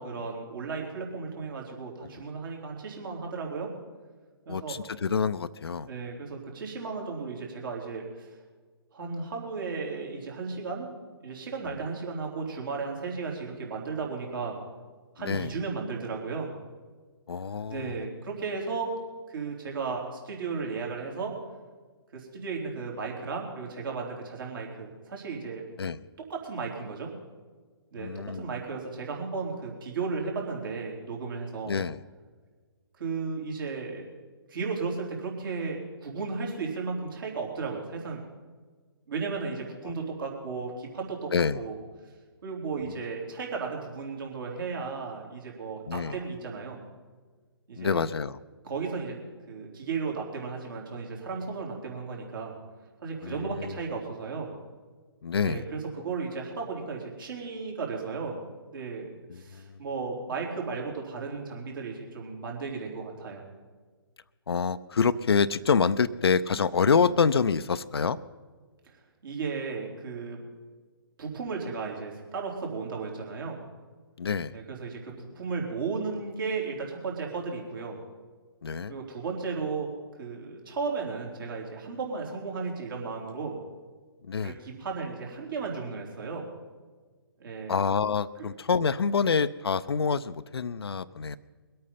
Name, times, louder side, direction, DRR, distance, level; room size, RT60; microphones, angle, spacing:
voice 1, 0.0-3.7 4.5-4.8 5.9-8.4 8.9-10.9 11.2-14.6 15.2-16.5 17.7-18.9 19.3-21.3 22.1-25.6 26.3-27.1 27.9-31.8 33.0-34.1 34.5-38.2 39.1-41.3 41.5-41.8 42.4-46.8 47.7-48.0 48.6-49.2 49.5-52.6 53.0-54.5 55.4-58.4 58.7-63.4 68.8-68.9 69.2-70.4 71.2-73.6 74.5-78.0 78.9-79.9 80.2-83.6 84.4-86.5 87.4-87.7, right 4 dB, 55° right, -1 dB, 3.9 m, -35 dB
voice 2, 4.5-5.9 15.2-15.5 17.3-17.9 25.8-26.0 28.0-28.5 31.7-32.0 39.8-39.9 41.3-41.6 45.9-46.2 47.8-48.4 53.2-53.8 55.2-55.6 59.3-59.7 64.5-68.2 74.2-74.6 78.6-78.9 84.2-84.6 87.7-91.4, left 5 dB, 70° left, 14 dB, 0.6 m, -27 dB
22.0 x 8.7 x 5.6 m, 1.5 s
figure-of-eight pair, 140°, 14 cm